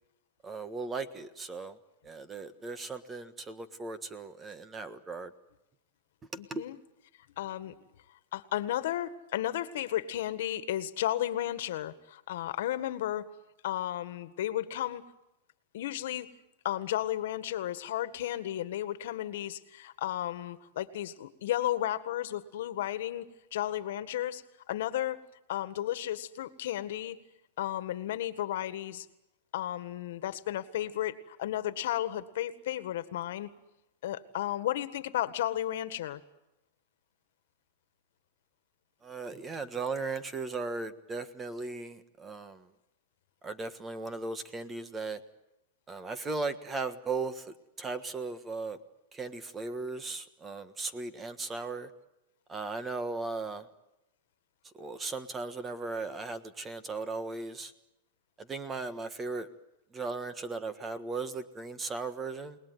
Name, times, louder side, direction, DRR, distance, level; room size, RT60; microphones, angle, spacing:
voice 1, 0.4-1.8 2.0-5.3 6.3-6.6 39.0-42.7 43.4-45.2 45.9-48.8 49.1-51.9 52.5-53.7 54.7-57.7 58.4-59.5 59.9-62.6, right 3 dB, 15° right, 11 dB, 1.4 m, -37 dB
voice 2, 6.4-6.8 7.4-7.7 8.3-13.3 13.6-15.0 15.7-16.3 16.6-24.4 24.7-25.2 25.5-27.2 27.6-29.0 29.5-33.5 34.0-36.2, left 12 dB, 70° left, 12 dB, 1.7 m, -33 dB
29.5 x 19.5 x 9.4 m, 0.95 s
supercardioid pair, 150°, 0 cm